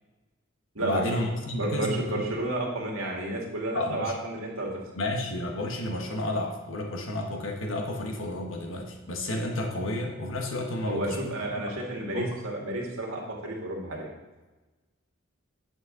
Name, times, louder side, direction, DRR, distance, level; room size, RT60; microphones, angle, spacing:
voice 1, 0.8-2.3 3.7-4.1 4.9-11.3 11.7-11.8 12.1-12.4, left 1 dB, 70° left, 2 dB, 1.3 m, -31 dB
voice 2, 1.5-4.7 10.8-14.1, right 2 dB, 85° right, -2 dB, 2.1 m, -31 dB
9.2 x 6.2 x 3.8 m, 1.2 s
head